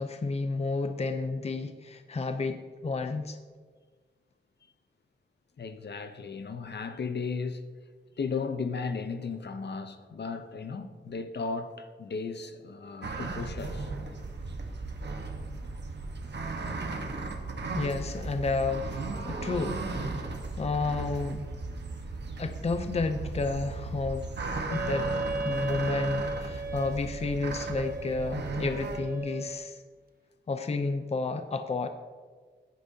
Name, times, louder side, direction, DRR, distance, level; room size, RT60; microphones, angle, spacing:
voice 1, 0.0-3.4 17.7-18.9 19.2-20.2 20.6-21.4 22.4-24.3 24.6-25.1 25.4-29.8 30.5-31.9, left 3 dB, 35° left, 0.6 m, -31 dB
voice 2, 5.6-7.7 8.2-13.9 17.5-17.8, left 4 dB, 65° left, 0.8 m, -35 dB
sound 1, 13.0-29.0, right 3 dB, 65° right, 1.2 m, -36 dB
Wind instrument woodwind instrument, 24.7-29.8, right 2 dB, 50° right, 0.8 m, -36 dB
15.5 x 10.5 x 2.8 m
wide cardioid pair, 115°, 19 cm